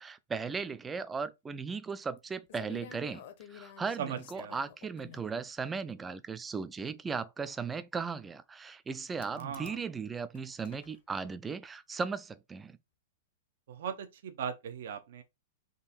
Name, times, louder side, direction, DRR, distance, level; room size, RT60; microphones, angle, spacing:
voice 1, 0.0-3.2 3.5-12.8, right 5 dB, 10° right, 0.3 m, -37 dB
sound 1, 2.2-2.3 2.5-5.2 6.3-6.4 9.2-9.8 10.1-11.0, left 9 dB, 55° left, 0.7 m, -51 dB
voice 2, 4.0-4.5 9.3-9.8 13.7-15.2, right 8 dB, 65° right, 0.6 m, -39 dB
3.7 x 2.6 x 4.2 m
hypercardioid pair, 155°, 0 cm